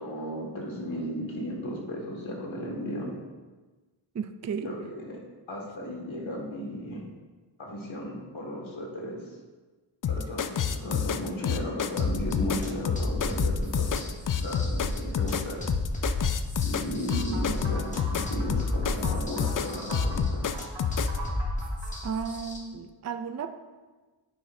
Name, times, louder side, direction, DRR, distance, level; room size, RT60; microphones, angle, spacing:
voice 1, 0.0-3.1 4.6-5.1 5.5-7.0 7.6-9.4 10.1-14.1 14.4-15.7 16.6-20.6, equal, 75° left, -2 dB, 2.0 m, -35 dB
voice 2, 4.1-4.7 22.0-23.5, right 6 dB, 35° right, 8 dB, 0.4 m, -33 dB
sound 1, 10.0-21.2, left 7 dB, 45° left, 0.4 m, -28 dB
sound 2, 12.0-22.6, left 1 dB, 15° left, 1.3 m, -33 dB
sound 3, 17.1-22.2, right 2 dB, 65° right, 1.6 m, -42 dB
9.3 x 6.0 x 2.7 m, 1.3 s
wide cardioid pair, 65°, 47 cm